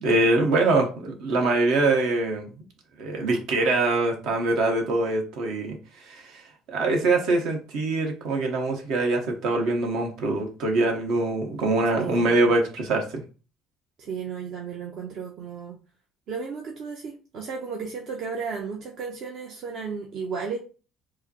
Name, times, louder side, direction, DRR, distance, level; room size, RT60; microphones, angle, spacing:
voice 1, 0.0-2.5 3.0-5.7 6.0-13.2, right 2 dB, 75° right, 2 dB, 1.1 m, -24 dB
voice 2, 12.0-12.5 14.0-15.8 16.3-20.6, right 5 dB, 55° right, 0 dB, 0.7 m, -34 dB
4.7 x 2.1 x 2.9 m, 0.34 s
cardioid pair, 105°, 0 cm